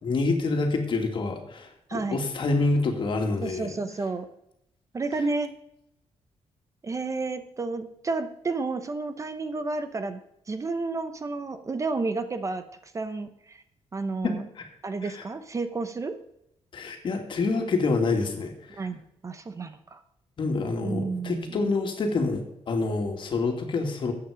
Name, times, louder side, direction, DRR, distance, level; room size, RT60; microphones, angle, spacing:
voice 1, 0.0-3.7 14.2-14.6 15.0-15.2 16.7-18.8 20.4-24.1, left 3 dB, 50° left, 4 dB, 2.4 m, -27 dB
voice 2, 1.9-2.2 3.4-4.3 4.9-5.5 6.8-10.2 10.5-13.6 13.9-14.5 14.8-16.1 18.8-20.0 20.8-21.6, right 3 dB, 30° right, 10 dB, 0.8 m, -31 dB
14.0 x 8.8 x 5.1 m, 0.81 s
wide cardioid pair, 140°, 11 cm